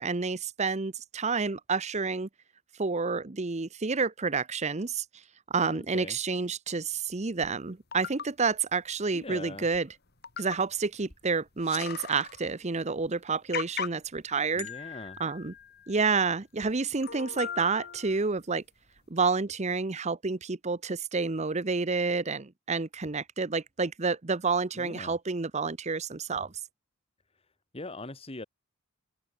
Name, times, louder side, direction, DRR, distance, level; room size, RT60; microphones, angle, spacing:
voice 1, 0.0-2.3 2.8-5.0 5.5-9.9 10.4-14.7 15.2-15.5 15.9-18.6 19.1-26.5, right 4 dB, 30° right, 0.8 m, -29 dB
voice 2, 5.6-6.2 9.1-9.7 14.5-15.2 24.7-25.1 27.7-28.5, left 2 dB, 25° left, 1.6 m, -41 dB
sound 1, 7.4-7.5 7.9-8.3 9.3-9.4 9.7-9.9 10.2-10.7 11.1-11.2 11.5-12.5 13.0-13.1 13.5-14.2 14.6-16.1 16.6-16.7 17.0-18.4 19.0-19.1, left 7 dB, 45° left, 3.2 m, -39 dB
open air
head